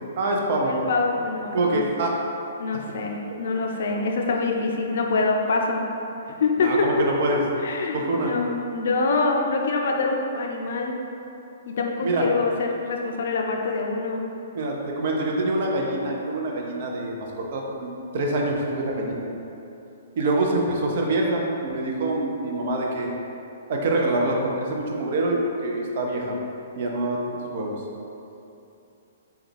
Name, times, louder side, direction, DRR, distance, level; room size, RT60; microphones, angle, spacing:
voice 1, 0.2-0.7 1.5-2.2 6.6-7.4 7.9-8.3 12.0-12.3 14.5-19.3 20.2-23.1 23.7-26.4 26.8-27.8, right 2 dB, 55° right, -1 dB, 0.5 m, -25 dB
voice 2, 0.7-1.8 2.6-5.8 6.4-6.9 7.6-10.9 11.7-14.2, left 3 dB, 65° left, 1 dB, 0.4 m, -25 dB
3.4 x 2.2 x 3.3 m, 2.8 s
hypercardioid pair, 125°, 0 cm